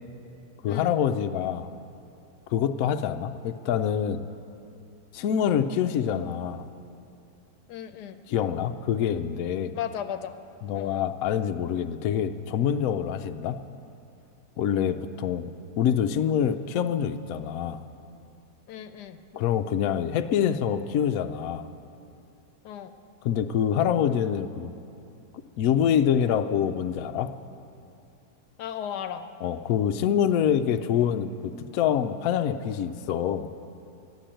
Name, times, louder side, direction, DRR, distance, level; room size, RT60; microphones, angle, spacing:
voice 1, 0.6-1.7 2.5-4.2 5.1-6.7 8.3-9.7 10.6-13.6 14.6-17.8 19.3-21.7 23.2-24.7 25.6-27.3 29.4-33.5, left 8 dB, 70° left, 8 dB, 0.9 m, -26 dB
voice 2, 7.7-8.2 9.7-10.4 10.7-11.1 18.7-19.2 22.6-22.9 28.6-29.3, left 9 dB, 85° left, 10 dB, 1.2 m, -35 dB
12.5 x 10.0 x 8.9 m, 2.7 s
omnidirectional pair, 1.8 m